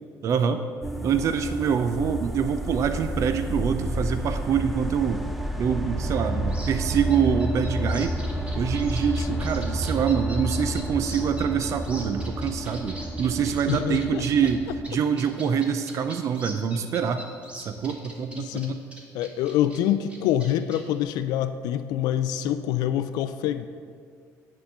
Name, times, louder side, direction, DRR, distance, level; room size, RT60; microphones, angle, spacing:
voice 1, 0.2-0.6 1.0-5.2 5.6-8.2 8.5-18.8, right 7 dB, 50° right, 9 dB, 0.5 m, -25 dB
sound 1, 0.8-14.9, equal, ahead, 0.6 m, -30 dB
sound 2, 6.5-14.5 14.8-14.9 15.2-19.8 20.0-21.0, right 1 dB, 15° right, 1.6 m, -42 dB
voice 2, 13.7-14.2 18.3-18.8 19.1-23.7, left 11 dB, 80° left, 10 dB, 0.3 m, -26 dB
9.2 x 3.8 x 7.1 m, 2.1 s
cardioid pair, 105°, 7 cm